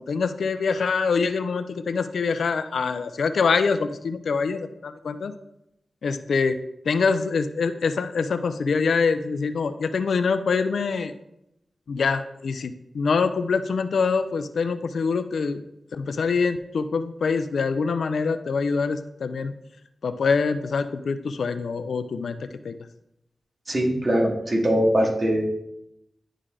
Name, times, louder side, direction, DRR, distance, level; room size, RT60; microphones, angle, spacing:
voice 1, 0.0-5.3 6.0-6.6 6.9-11.1 11.9-15.6 15.9-19.5 20.0-22.8, left 5 dB, 80° left, 11 dB, 0.4 m, -25 dB
voice 2, 23.7-25.4, equal, 40° right, 0 dB, 1.9 m, -22 dB
11.0 x 3.7 x 3.2 m, 0.83 s
cardioid pair, 40°, 0 cm